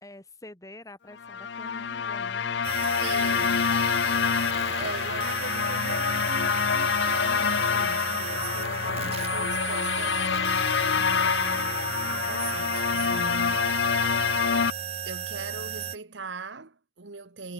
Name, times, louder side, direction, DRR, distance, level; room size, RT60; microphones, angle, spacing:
voice 1, 0.0-3.0 10.7-11.0, left 1 dB, 20° left, 2.2 m, -47 dB
sound 1, 1.2-14.7, left 6 dB, 65° left, 0.6 m, -26 dB
sound 2, 2.6-16.0, right 9 dB, 30° right, 0.3 m, -35 dB
voice 2, 3.0-3.7 4.8-10.3 11.0-11.7 12.1-13.7 15.0-17.5, right 4 dB, 70° right, 1.3 m, -40 dB
head